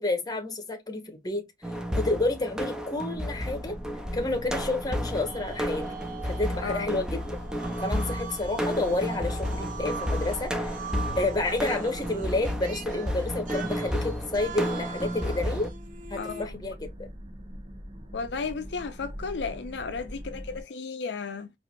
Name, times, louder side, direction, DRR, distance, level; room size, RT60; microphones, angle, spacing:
voice 1, 0.0-1.4 2.0-3.8 4.1-5.9 6.4-7.4 7.8-10.7 11.1-15.7 16.1-17.1, left 2 dB, 25° left, 1.0 m, -30 dB
sound 1, 1.6-15.7, equal, 5° right, 0.5 m, -32 dB
sound 2, 3.1-20.6, equal, 30° right, 1.1 m, -43 dB
sound 3, 5.3-16.5, right 5 dB, 50° right, 0.7 m, -41 dB
voice 2, 6.6-7.0 16.2-16.6 18.1-21.5, left 5 dB, 75° left, 0.5 m, -34 dB
4.5 x 2.6 x 2.3 m
head